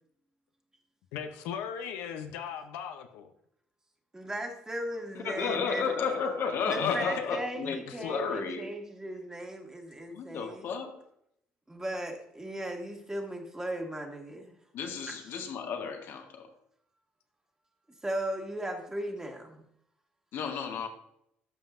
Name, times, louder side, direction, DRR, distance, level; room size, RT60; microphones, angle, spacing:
voice 1, 1.1-3.3 6.8-7.3 7.9-8.3, left 8 dB, 85° left, 6 dB, 0.6 m, -38 dB
voice 2, 4.1-5.9 6.7-10.6 11.7-14.6 15.1-15.2 18.0-19.7, right 1 dB, 15° right, 2 dB, 1.7 m, -37 dB
voice 3, 5.1-8.7 10.1-11.1 14.7-16.5 20.3-20.9, left 5 dB, 65° left, 4 dB, 1.1 m, -33 dB
13.0 x 5.2 x 2.5 m, 0.75 s
supercardioid pair, 75°, 4 cm